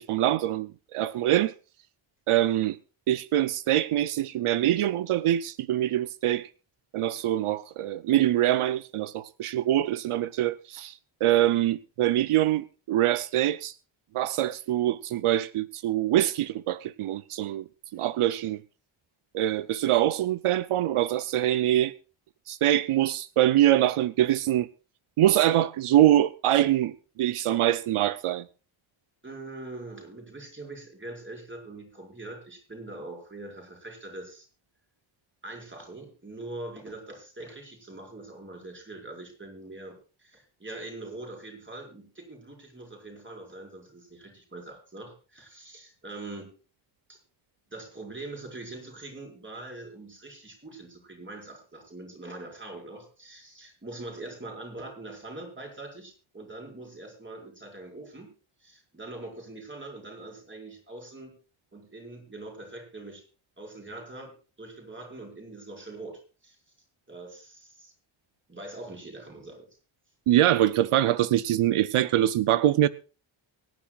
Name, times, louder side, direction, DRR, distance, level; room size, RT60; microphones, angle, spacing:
voice 1, 0.0-1.5 2.3-2.8 3.1-6.5 6.9-13.7 14.1-17.6 17.9-18.6 19.3-21.9 22.5-24.7 25.2-28.5 70.3-72.9, right 13 dB, 85° right, 0.6 m, -24 dB
voice 2, 29.2-34.5 35.4-46.5 47.1-47.2 47.7-58.3 58.6-61.3 61.7-63.2 63.6-66.6 67.1-67.9 68.5-69.7, right 2 dB, 25° right, 4.8 m, -43 dB
24.0 x 10.0 x 2.4 m
wide cardioid pair, 155°, 49 cm